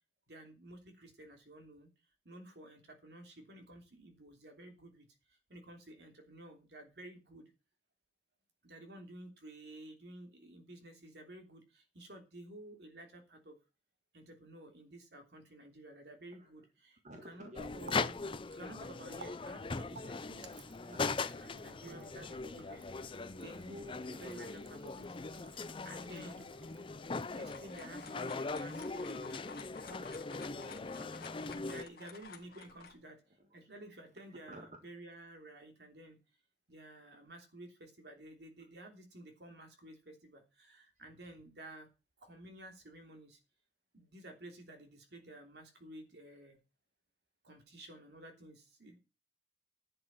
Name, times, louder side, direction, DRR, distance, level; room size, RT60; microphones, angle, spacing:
voice 1, 0.3-1.9 2.2-7.5 8.6-13.6 14.1-18.2 18.5-25.2 25.8-26.5 27.3-29.5 31.6-33.2 33.5-36.2 36.7-41.9 42.2-43.4 43.9-46.6 47.4-49.0, right 1 dB, 65° right, 4 dB, 3.2 m, -52 dB
voice 2, 17.0-18.3 20.0-23.4 24.1-24.6 25.3-25.9 26.9-27.1 30.4-31.4 34.3-34.7, right 1 dB, 40° right, 4 dB, 1.7 m, -56 dB
Water tap faucet, 17.3-28.1, right 4 dB, 80° right, 1.2 m, -58 dB
sound 1, 17.6-31.8, left 4 dB, 30° left, 0.5 m, -40 dB
sound 2, 27.2-33.0, left 5 dB, 55° left, 1.7 m, -52 dB
11.0 x 7.8 x 6.0 m, 0.30 s
head